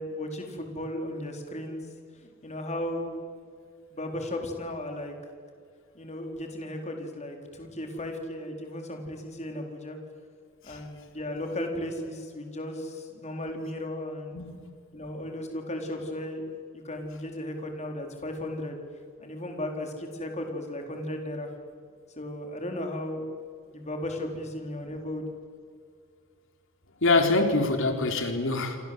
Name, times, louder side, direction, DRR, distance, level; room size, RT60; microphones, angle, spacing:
voice 1, 0.0-1.8 2.2-3.1 3.9-5.1 5.9-10.0 10.6-14.4 14.9-16.5 16.8-18.8 19.2-21.5 22.2-23.2 23.7-25.3, left 1 dB, 35° left, 3 dB, 4.7 m, -35 dB
voice 2, 27.0-28.8, left 3 dB, 65° left, 4 dB, 4.0 m, -24 dB
29.0 x 25.0 x 8.1 m, 2.1 s
head